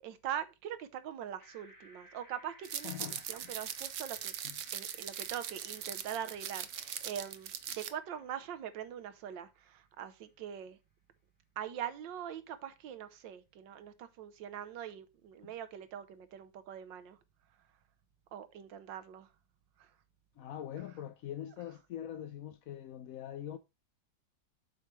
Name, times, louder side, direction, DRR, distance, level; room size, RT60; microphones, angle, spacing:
voice 1, 0.0-4.3 4.7-10.8 11.6-17.2 18.3-19.3 19.8-19.9, right 9 dB, 85° right, 1.6 m, -43 dB
sound 1, 1.4-9.6, right 1 dB, 10° left, 1.5 m, -61 dB
sound 2, 2.6-7.9, right 9 dB, 60° right, 0.8 m, -40 dB
voice 2, 2.8-3.5 4.4-4.6 15.4-15.5 20.4-23.6, left 10 dB, 75° left, 0.8 m, -43 dB
8.0 x 3.1 x 5.9 m
omnidirectional pair, 2.0 m